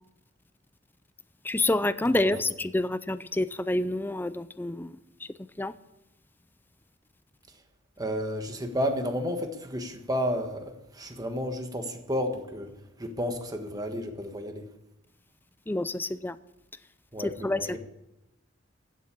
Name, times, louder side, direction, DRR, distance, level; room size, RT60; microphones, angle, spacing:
voice 1, 1.4-4.9 5.6-5.7 15.7-16.4 17.2-17.6, left 2 dB, 10° left, 14 dB, 0.4 m, -28 dB
voice 2, 8.0-12.7 13.0-14.6 17.1-17.8, equal, 20° right, 6 dB, 1.4 m, -32 dB
15.5 x 7.5 x 8.5 m, 0.96 s
head